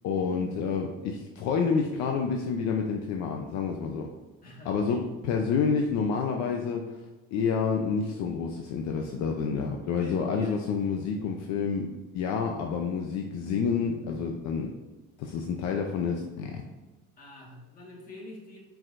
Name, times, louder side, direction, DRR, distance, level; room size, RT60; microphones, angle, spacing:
voice 1, 0.0-4.1 4.6-6.9 7.3-14.7 15.2-16.6, left 5 dB, 65° left, 2 dB, 0.7 m, -29 dB
voice 2, 4.4-5.0 9.0-9.1 10.0-10.7 17.2-18.6, left 1 dB, 30° left, -3 dB, 1.6 m, -46 dB
7.5 x 4.9 x 2.6 m, 1.2 s
cardioid pair, 165°, 30 cm